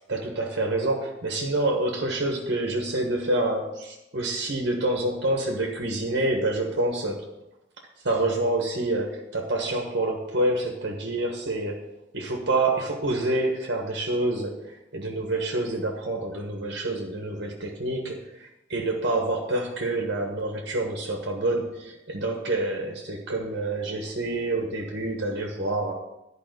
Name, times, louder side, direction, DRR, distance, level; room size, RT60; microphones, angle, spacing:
voice 1, 0.0-7.3 8.0-25.9, right 2 dB, 60° right, 0 dB, 1.4 m, -27 dB
11.5 x 5.0 x 6.7 m, 0.92 s
head